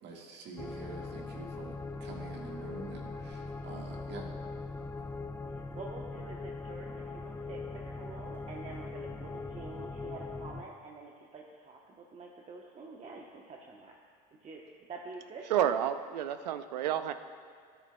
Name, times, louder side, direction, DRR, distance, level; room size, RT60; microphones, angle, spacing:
voice 1, 0.0-4.3, right 4 dB, 55° right, 0 dB, 1.7 m, -46 dB
sound 1, 0.6-10.6, left 3 dB, 10° left, 0.5 m, -41 dB
voice 2, 5.5-13.9 14.4-14.6 14.9-15.5, right 3 dB, 35° right, -1 dB, 1.0 m, -47 dB
voice 3, 15.5-17.1, right 10 dB, 85° right, 11 dB, 0.5 m, -30 dB
13.0 x 10.0 x 2.3 m, 2.2 s
hypercardioid pair, 75°, 21 cm